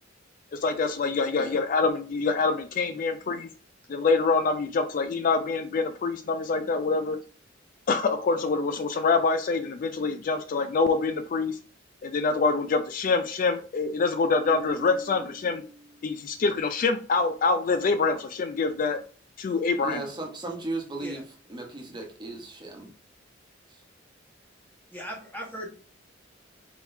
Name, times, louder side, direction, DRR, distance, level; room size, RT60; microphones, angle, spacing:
voice 1, 0.5-3.5 3.9-7.2 7.9-11.6 12.0-15.6 16.0-19.0 19.4-20.0, left 4 dB, 45° left, 9 dB, 0.3 m, -25 dB
Marimba xylophone, 14.4-16.5, right 1 dB, 40° right, 0.5 m, -45 dB
voice 2, 19.8-21.2 21.5-22.9 23.7-23.8, right 2 dB, 25° right, 1 dB, 1.0 m, -36 dB
voice 3, 24.9-25.7, equal, 10° left, -1 dB, 1.2 m, -37 dB
4.3 x 3.8 x 2.7 m, 0.40 s
head